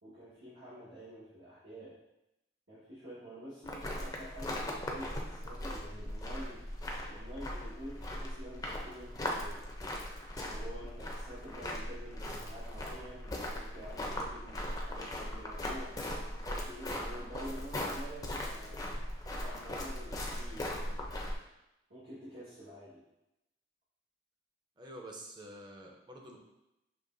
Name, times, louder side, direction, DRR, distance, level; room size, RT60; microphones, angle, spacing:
voice 1, 0.0-1.9 2.7-6.6 7.1-9.7 10.4-18.8 19.4-21.2 21.9-23.0, equal, 80° right, -11 dB, 1.4 m, -48 dB
sound 1, 3.6-21.3, left 1 dB, 20° left, 0.5 m, -39 dB
voice 2, 24.8-26.4, right 1 dB, 25° right, 1 dB, 0.6 m, -48 dB
6.4 x 3.0 x 2.5 m, 0.89 s
head